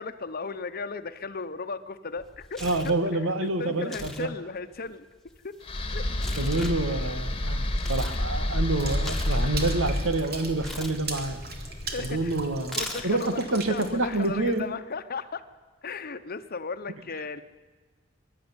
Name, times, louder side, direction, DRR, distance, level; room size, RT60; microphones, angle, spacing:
voice 1, 0.0-5.1 5.4-5.6 5.9-6.0 11.9-12.3 12.7-15.4 15.8-17.4, left 4 dB, 50° left, 10 dB, 1.0 m, -36 dB
Tearing, 2.2-3.0 3.8-4.3 4.5-8.2 8.6-10.1 10.6-11.0 12.6-13.3, left 1 dB, ahead, 1.8 m, -40 dB
voice 2, 2.6-4.3 6.1-11.4 12.0-12.8 13.0-14.7, right 2 dB, 85° right, 9 dB, 1.8 m, -28 dB
sound 1, 5.6-12.8, left 1 dB, 25° left, 1.6 m, -30 dB
Water / Splash splatter, 8.8-14.6, right 3 dB, 50° right, 2.8 m, -39 dB
22.5 x 12.0 x 9.9 m, 1.4 s
head